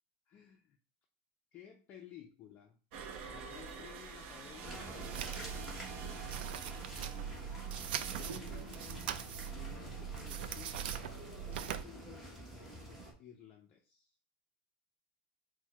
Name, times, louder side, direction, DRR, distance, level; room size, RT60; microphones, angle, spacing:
voice 1, 0.3-0.8 1.5-2.8 3.2-6.8 8.1-8.7 9.5-11.0 11.5-14.2, left 9 dB, 30° left, 2 dB, 0.4 m, -56 dB
sound 1, 2.9-8.4, right 5 dB, 60° right, 0.7 m, -48 dB
sound 2, 4.6-13.1, right 1 dB, 5° right, 1.0 m, -48 dB
sound 3, 5.0-11.8, right 9 dB, 85° right, 0.4 m, -41 dB
4.5 x 2.1 x 4.5 m, 0.38 s
supercardioid pair, 170°, 5 cm